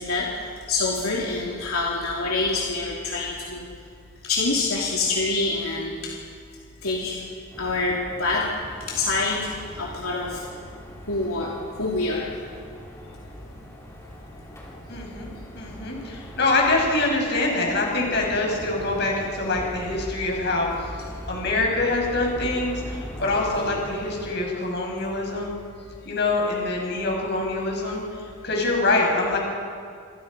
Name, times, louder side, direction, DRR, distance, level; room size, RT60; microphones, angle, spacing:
voice 1, 0.0-3.7 4.2-6.2 6.8-7.2 7.6-8.5 8.9-9.5 9.8-10.4 11.1-12.3, left 3 dB, 80° left, -3 dB, 3.3 m, -26 dB
sound 1, 7.5-24.3, equal, 15° left, 4.3 m, -40 dB
voice 2, 14.9-15.3 15.5-20.7 21.3-25.5 26.0-28.0 28.4-29.4, left 2 dB, 50° left, 0 dB, 6.6 m, -24 dB
27.5 x 26.5 x 5.4 m, 2.2 s
head